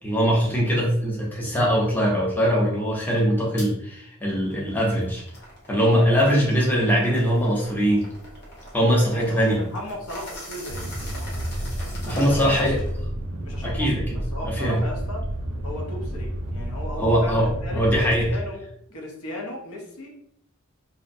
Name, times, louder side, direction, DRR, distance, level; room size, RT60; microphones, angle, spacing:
voice 1, 0.0-5.2 5.7-8.1 8.7-9.6 12.1-12.8 13.6-14.2 14.4-14.8 17.0-18.3, equal, 10° left, -4 dB, 0.5 m, -21 dB
sound 1, 3.6-3.7 4.2-13.0, left 1 dB, 50° left, 0.8 m, -43 dB
voice 2, 9.1-11.3 12.1-12.7 13.4-15.3 15.6-18.6 18.9-20.1, left 1 dB, 75° left, 1 dB, 0.6 m, -36 dB
sound 2, 10.7-18.4, right 1 dB, 90° right, 0.5 m, -31 dB
2.5 x 2.0 x 2.6 m, 0.70 s
head